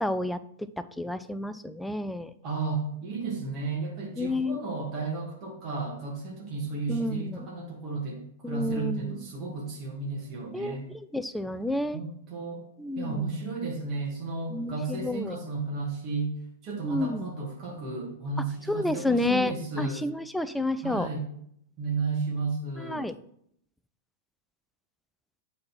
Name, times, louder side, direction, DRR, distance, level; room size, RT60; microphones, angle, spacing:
voice 1, 0.0-2.3 4.2-4.6 6.9-7.5 8.4-9.2 10.5-10.8 11.1-12.0 12.8-13.3 14.5-15.4 16.8-17.2 18.7-21.1 22.8-23.2, left 2 dB, 5° left, 12 dB, 0.4 m, -30 dB
voice 2, 2.4-8.2 8.5-10.8 11.9-12.6 13.0-16.3 16.6-20.0 20.8-21.3 21.8-23.1, right 3 dB, 35° right, -3 dB, 2.2 m, -33 dB
8.4 x 4.2 x 4.6 m, 0.71 s
figure-of-eight pair, 95°, 0 cm